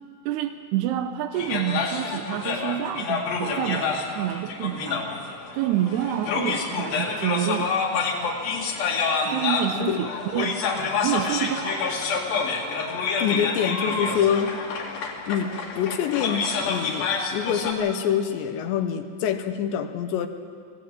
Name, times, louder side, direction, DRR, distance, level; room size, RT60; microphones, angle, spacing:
voice 1, 0.3-5.2 5.5-7.7 9.3-10.6 11.0-11.8, right 11 dB, 85° right, 7 dB, 2.4 m, -28 dB
sound 1, 1.3-17.7, left 4 dB, 55° left, 3.4 m, -28 dB
voice 2, 9.8-10.1 13.2-14.5 15.3-20.3, left 8 dB, 80° left, 8 dB, 3.0 m, -26 dB
23.0 x 15.0 x 9.1 m, 2.4 s
omnidirectional pair, 5.5 m